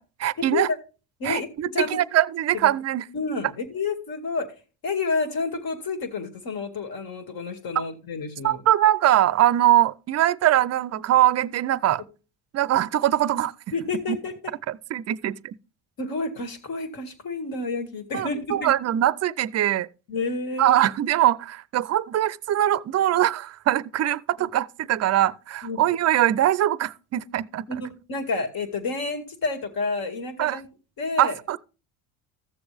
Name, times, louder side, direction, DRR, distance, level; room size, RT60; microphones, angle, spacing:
voice 1, 0.2-0.7 1.2-3.0 8.4-12.0 12.5-13.5 14.1-14.2 14.7-15.6 18.1-19.9 20.6-27.7 30.4-30.6 31.2-31.6, right 12 dB, 40° right, 0.5 m, -22 dB
voice 2, 1.2-2.0 3.1-4.5 4.8-8.6 13.7-14.5 16.0-18.7 20.1-20.8 24.4-24.5 25.6-25.8 27.7-30.6 31.0-31.6, left 3 dB, 55° left, 2.3 m, -30 dB
14.0 x 7.0 x 3.4 m
supercardioid pair, 95°, 42 cm